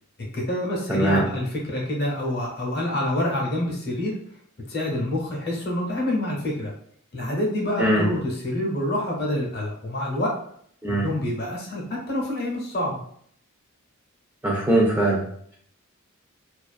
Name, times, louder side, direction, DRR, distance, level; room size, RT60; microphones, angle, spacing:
voice 1, 0.3-4.1 4.7-6.7 7.1-10.4 10.9-13.0, left 1 dB, 50° left, -2 dB, 0.7 m, -27 dB
voice 2, 0.9-1.2 7.8-8.0 10.8-11.1 14.4-15.2, right 1 dB, 10° right, -3 dB, 0.4 m, -21 dB
2.4 x 2.2 x 2.3 m, 0.64 s
head